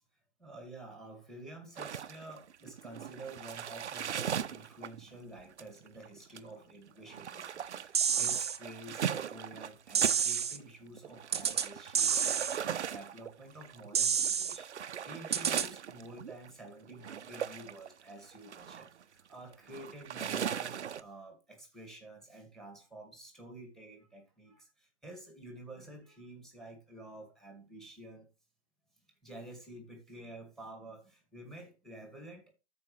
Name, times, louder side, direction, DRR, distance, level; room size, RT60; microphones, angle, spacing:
voice 1, 0.4-28.3 29.2-32.5, right 1 dB, ahead, 2.1 m, -50 dB
sound 1, 1.8-10.6 10.9-21.0, right 8 dB, 75° right, 0.7 m, -39 dB
sound 2, 7.9-8.6 9.9-10.6 11.3-11.7 11.9-12.6 13.9-14.6 15.3-15.7, right 7 dB, 25° right, 0.4 m, -29 dB
13.5 x 4.9 x 3.3 m
hypercardioid pair, 145°, 35 cm